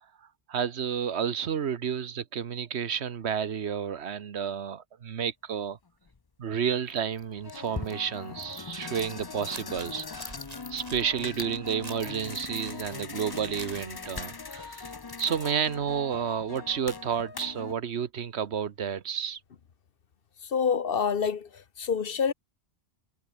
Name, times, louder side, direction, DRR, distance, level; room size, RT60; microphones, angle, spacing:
voice 1, 0.5-5.8 6.4-10.3 10.7-14.9 15.2-19.4, right 7 dB, 75° right, 1.3 m, -31 dB
sound 1, 6.1-6.2 6.9-17.7, left 4 dB, 25° left, 0.6 m, -40 dB
sound 2, 9.5-15.7, right 2 dB, 35° right, 3.7 m, -48 dB
voice 2, 20.4-22.3, left 6 dB, 60° left, 1.1 m, -27 dB
omnidirectional pair, 1.1 m